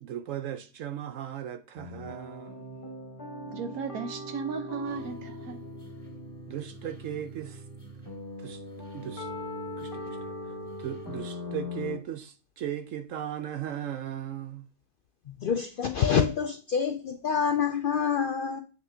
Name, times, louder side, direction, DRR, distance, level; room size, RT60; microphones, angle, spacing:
voice 1, 0.0-2.8 6.5-7.6 8.4-8.6 8.9-9.3 9.8-14.7, right 10 dB, 70° right, 0.9 m, -37 dB
sound 1, 1.8-12.0, left 2 dB, 40° left, 1.9 m, -40 dB
voice 2, 3.4-5.6, right 5 dB, 85° right, 1.4 m, -35 dB
sound 2, 4.8-11.2, right 5 dB, 5° left, 2.1 m, -49 dB
voice 3, 15.4-18.6, left 7 dB, 85° left, 0.4 m, -26 dB
7.8 x 6.1 x 2.7 m
omnidirectional pair, 1.5 m